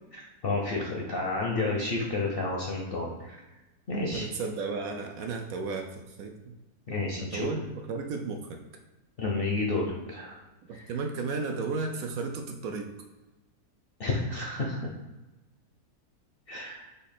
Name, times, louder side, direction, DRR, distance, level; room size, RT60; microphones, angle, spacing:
voice 1, 0.4-3.4 3.9-4.3 6.9-7.5 9.2-10.4 10.7-10.8 14.0-14.9 16.5-16.9, left 3 dB, 55° left, -2 dB, 0.6 m, -30 dB
voice 2, 4.1-6.3 7.2-7.6 7.9-8.6 10.7-12.9, right 4 dB, 70° right, 3 dB, 1.0 m, -33 dB
5.1 x 2.4 x 4.2 m, 1.1 s
omnidirectional pair, 1.7 m